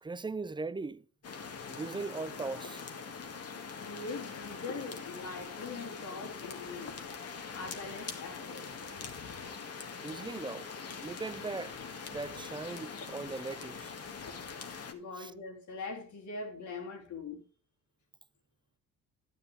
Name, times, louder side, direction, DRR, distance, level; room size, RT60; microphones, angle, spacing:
voice 1, 0.0-1.1 1.7-2.8 10.0-10.7 11.0-11.8 12.1-13.9 15.2-15.3, right 3 dB, 15° right, 0.6 m, -39 dB
sound 1, 1.2-14.9, left 5 dB, 55° left, 2.0 m, -43 dB
voice 2, 3.8-7.0 7.5-8.7 14.9-17.4, left 4 dB, 75° left, 3.4 m, -42 dB
11.5 x 10.0 x 3.6 m
cardioid pair, 90°, 30 cm